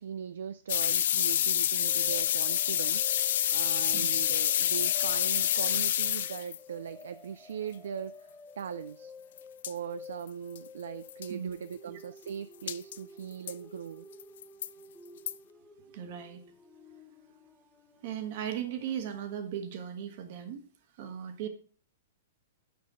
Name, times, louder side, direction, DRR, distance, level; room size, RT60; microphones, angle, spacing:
voice 1, 0.0-9.1 9.6-14.1, right 8 dB, 70° right, 13 dB, 0.3 m, -40 dB
sound 1, 0.7-6.6 9.4-9.5 9.6-9.7 10.3-10.4 10.6-10.7 11.1-11.3 12.7-13.0 13.5-13.6 14.2-14.7 15.3-15.4, left 11 dB, 65° left, 0.3 m, -28 dB
sound 2, 1.8-19.2, left 3 dB, ahead, 1.0 m, -52 dB
voice 2, 15.9-16.4 18.0-20.6 21.0-21.5, right 9 dB, 55° right, 8 dB, 1.4 m, -37 dB
6.8 x 5.7 x 5.3 m, 0.42 s
hypercardioid pair, 110°, 0 cm